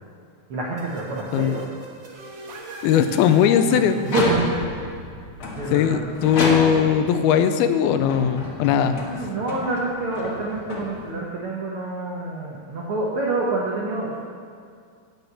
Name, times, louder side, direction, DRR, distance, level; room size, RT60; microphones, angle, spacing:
voice 1, 0.5-1.7 4.0-4.7 5.6-6.0 8.9-14.2, right 2 dB, 85° right, -4 dB, 1.2 m, -27 dB
sound 1, 0.8-6.4, right 2 dB, 55° right, 2.1 m, -39 dB
voice 2, 2.8-4.0 5.7-9.0, left 8 dB, 85° left, 10 dB, 2.5 m, -19 dB
sound 2, 4.0-4.8 5.4-7.1 7.7-11.3, left 2 dB, 55° left, 1.6 m, -30 dB
12.0 x 5.4 x 8.3 m, 2.2 s
omnidirectional pair, 4.3 m